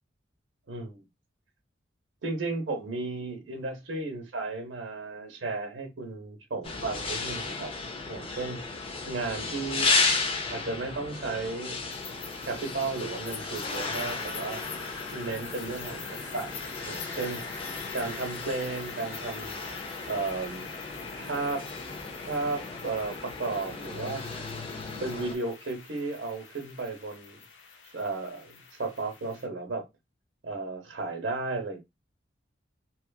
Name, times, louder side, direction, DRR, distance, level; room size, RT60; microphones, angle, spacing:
voice 1, 0.7-1.0 2.2-7.7 8.1-8.6 9.1-9.9 10.5-11.8 12.5-14.6 15.1-16.5 16.9-17.4 17.9-19.6 20.1-20.7 21.1-21.7 22.2-24.2 24.7-27.4 27.9-29.8 30.4-31.8, right 3 dB, 75° right, 0.8 m, -34 dB
sound 1, 6.6-25.3, left 3 dB, 30° left, 0.5 m, -34 dB
sound 2, 11.9-29.5, left 5 dB, 80° left, 0.6 m, -44 dB
2.9 x 2.3 x 2.3 m
head